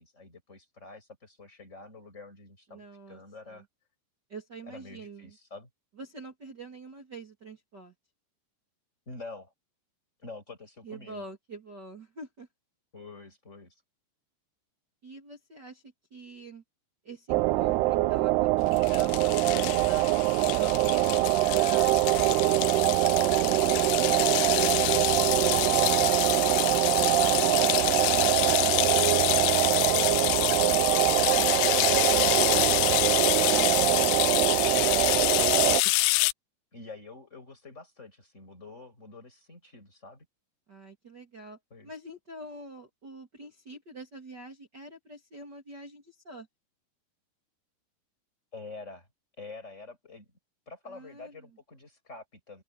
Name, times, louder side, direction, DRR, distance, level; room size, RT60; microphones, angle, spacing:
voice 1, 0.0-2.8 3.1-3.7 4.7-5.7 9.1-9.5 10.2-11.2 12.9-13.8 27.2-30.5 31.1-34.9 35.8-36.0 36.7-40.3 41.7-41.9 48.5-49.1 49.4-50.3 50.7-52.6, left 3 dB, 15° left, 6.0 m, -47 dB
voice 2, 2.7-3.6 4.3-5.4 6.0-7.9 10.8-12.5 15.0-15.8 16.1-16.6 17.0-20.1 20.5-25.3 40.7-41.6 41.8-46.5 50.9-51.5, right 3 dB, 30° right, 2.3 m, -45 dB
sound 1, 17.3-35.8, right 19 dB, 90° right, 2.3 m, -24 dB
sound 2, 18.7-36.3, left 21 dB, 85° left, 2.4 m, -27 dB
open air
omnidirectional pair, 5.4 m